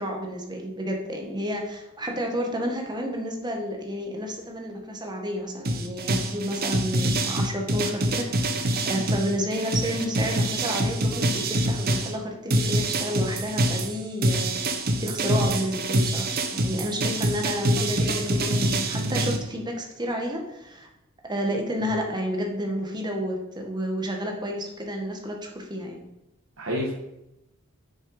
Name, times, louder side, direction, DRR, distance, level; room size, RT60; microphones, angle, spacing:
voice 1, 0.0-14.6 15.0-20.9 21.3-26.0, equal, 20° right, 1 dB, 1.8 m, -30 dB
sound 1, 5.6-12.1 12.5-19.4, right 1 dB, 45° right, 1.1 m, -25 dB
voice 2, 26.6-26.9, left 1 dB, 75° right, -4 dB, 2.1 m, -30 dB
9.3 x 6.7 x 5.0 m, 0.89 s
head